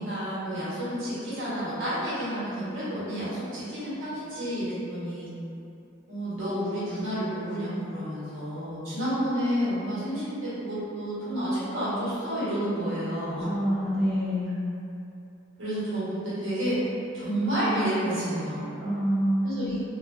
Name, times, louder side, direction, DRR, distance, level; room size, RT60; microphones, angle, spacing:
voice 1, 0.0-5.3 6.1-13.5 15.6-16.8 17.1-18.7 19.4-19.8, equal, 80° right, -11 dB, 1.1 m, -30 dB
voice 2, 13.4-14.6 18.8-19.8, equal, ahead, -12 dB, 0.6 m, -27 dB
2.8 x 2.4 x 2.6 m, 2.7 s
head